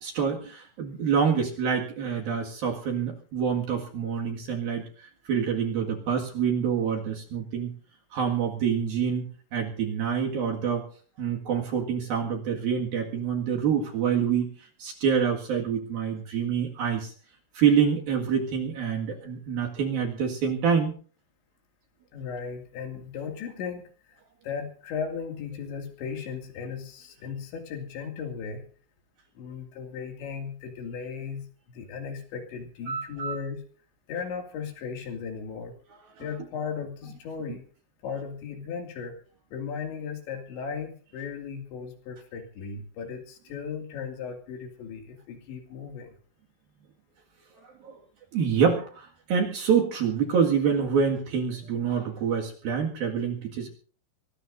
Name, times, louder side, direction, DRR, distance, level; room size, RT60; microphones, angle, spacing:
voice 1, 0.0-4.8 5.3-7.7 8.1-10.8 11.2-14.5 14.8-17.1 17.5-20.9 32.9-33.3 47.8-48.0 48.3-53.7, right 7 dB, 55° right, 0 dB, 3.2 m, -26 dB
voice 2, 22.1-24.1 24.4-28.6 29.4-31.5 31.7-33.6 34.1-35.8 36.2-37.6 38.0-39.2 39.5-46.2, left 6 dB, 65° left, 3 dB, 4.5 m, -36 dB
24.0 x 19.0 x 2.6 m, 0.42 s
omnidirectional pair, 5.8 m